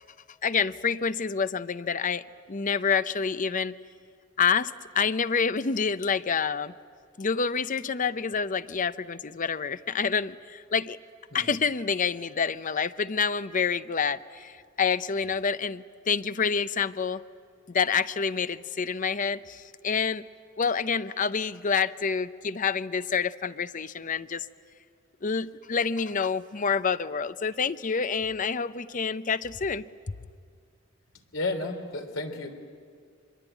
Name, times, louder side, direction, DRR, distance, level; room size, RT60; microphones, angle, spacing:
voice 1, 0.4-3.7 4.4-6.7 7.2-11.0 11.3-17.2 17.7-20.2 20.6-24.4 25.2-30.1, left 6 dB, 40° left, 14 dB, 0.7 m, -28 dB
voice 2, 31.3-32.5, left 2 dB, 70° left, 4 dB, 3.4 m, -32 dB
26.0 x 22.0 x 9.1 m, 2.2 s
head